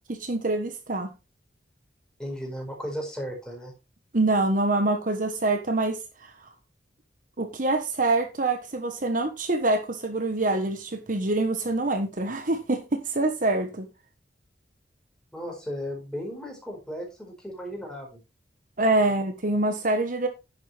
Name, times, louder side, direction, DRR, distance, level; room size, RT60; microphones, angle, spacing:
voice 1, 0.1-1.1 4.1-6.3 7.4-13.9 18.8-20.3, right 2 dB, 50° right, 1.2 m, -25 dB
voice 2, 2.2-3.7 15.3-18.2 19.0-19.1, equal, 5° left, 4.5 m, -35 dB
10.5 x 7.8 x 3.4 m
head